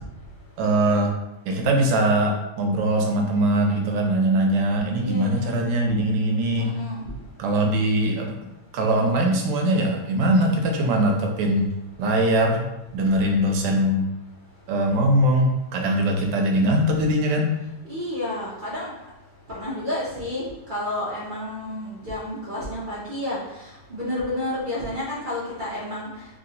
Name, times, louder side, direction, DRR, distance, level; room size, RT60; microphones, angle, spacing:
voice 1, 0.6-1.2 1.5-6.7 7.4-8.3 8.7-11.7 12.0-14.0 14.7-17.5, right 1 dB, 85° right, 2 dB, 1.3 m, -21 dB
voice 2, 4.9-5.6 6.6-7.0 17.9-18.9 19.5-26.1, left 1 dB, 65° right, -7 dB, 0.5 m, -30 dB
3.0 x 2.9 x 2.7 m, 0.94 s
omnidirectional pair, 1.9 m